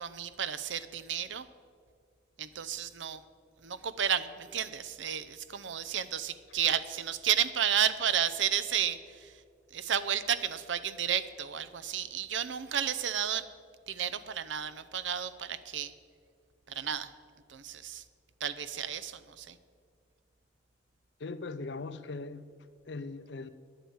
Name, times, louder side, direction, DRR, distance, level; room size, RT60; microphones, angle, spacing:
voice 1, 0.0-1.5 2.4-3.2 3.6-9.4 9.7-13.5 13.9-15.9 16.7-17.1 17.5-18.0 18.4-19.6, right 9 dB, 75° right, 0.6 m, -32 dB
voice 2, 21.2-23.5, left 3 dB, 65° left, 0.6 m, -40 dB
10.0 x 8.9 x 8.8 m
head